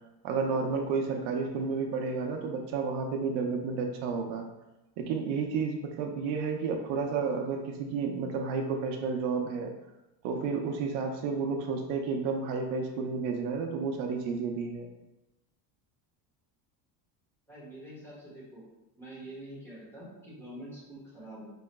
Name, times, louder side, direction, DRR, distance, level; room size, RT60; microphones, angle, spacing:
voice 1, 0.2-4.5 5.0-9.7 10.2-14.9, right 5 dB, 75° right, 3 dB, 0.6 m, -31 dB
voice 2, 17.5-18.6 19.0-21.5, right 1 dB, 5° left, -8 dB, 1.3 m, -46 dB
4.6 x 3.1 x 2.2 m, 0.99 s
cardioid pair, 145°, 46 cm